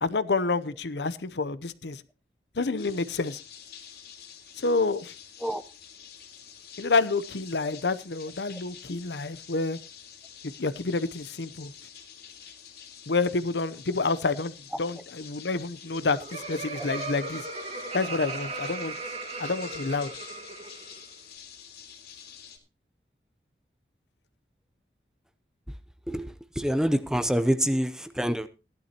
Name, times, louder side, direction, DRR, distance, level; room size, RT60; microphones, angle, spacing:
voice 1, 0.0-2.0 2.6-3.4 4.6-5.1 6.8-9.8 10.6-11.7 13.1-17.5 17.9-18.9 19.4-20.1, left 3 dB, 75° left, 0.7 m, -28 dB
sound 1, 2.8-22.6, left 8 dB, 60° left, 2.9 m, -48 dB
Laughter, 15.8-21.0, right 3 dB, 40° right, 2.1 m, -37 dB
voice 2, 26.1-28.5, equal, 5° right, 0.6 m, -26 dB
16.0 x 12.0 x 2.9 m
head